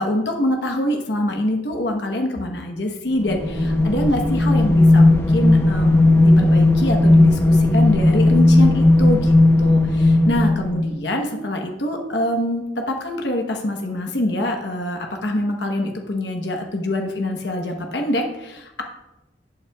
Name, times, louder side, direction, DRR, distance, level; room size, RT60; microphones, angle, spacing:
voice 1, 0.0-18.8, left 1 dB, 85° left, 2 dB, 1.1 m, -25 dB
sound 1, 3.2-10.9, left 2 dB, 15° left, 0.8 m, -15 dB
11.5 x 8.8 x 2.3 m, 0.98 s
head